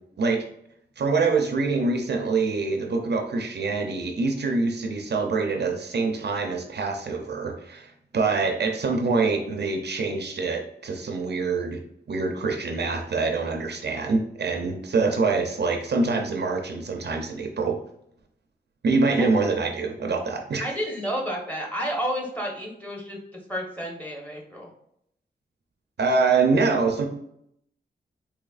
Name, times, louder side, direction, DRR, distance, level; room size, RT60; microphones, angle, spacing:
voice 1, 1.0-11.8 12.1-17.8 18.8-20.6 26.0-27.1, right 4 dB, 65° right, 3 dB, 0.5 m, -25 dB
voice 2, 20.6-23.2 23.5-24.7, equal, 10° left, -1 dB, 1.0 m, -31 dB
4.0 x 3.0 x 2.4 m, 0.73 s
wide cardioid pair, 85°, 19 cm